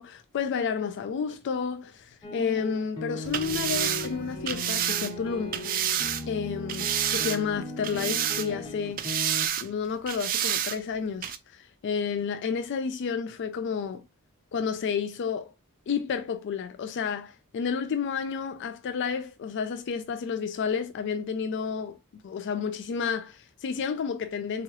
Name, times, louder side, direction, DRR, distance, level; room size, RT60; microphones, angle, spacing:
voice 1, 0.0-5.5 6.3-9.3 9.6-14.0 14.5-15.5 15.9-22.0 22.2-24.6, left 6 dB, 55° left, 0.3 m, -31 dB
sound 1, 2.2-9.5, left 2 dB, 25° left, 0.9 m, -37 dB
sound 2, 3.2-6.2 6.7-7.5 7.8-8.7 9.0-9.7 10.1-10.8 11.2-11.4, right 10 dB, 40° right, 0.3 m, -29 dB
3.6 x 2.9 x 3.0 m
head